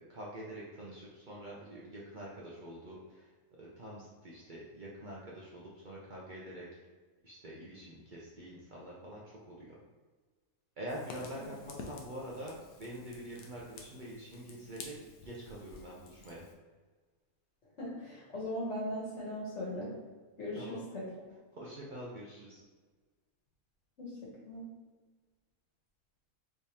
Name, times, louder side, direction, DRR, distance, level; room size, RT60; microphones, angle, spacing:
voice 1, 0.1-3.3 3.6-6.7 7.2-9.7 10.8-14.9 15.2-16.5 20.5-20.8 21.5-22.6, right 1 dB, 70° right, -5 dB, 0.4 m, -45 dB
Fire, 10.9-16.5, left 4 dB, 90° left, 1.1 m, -51 dB
voice 2, 17.8-19.9 20.4-21.1 24.0-24.7, left 1 dB, 55° left, -5 dB, 1.4 m, -39 dB
3.5 x 3.1 x 2.7 m, 1.4 s
omnidirectional pair, 1.6 m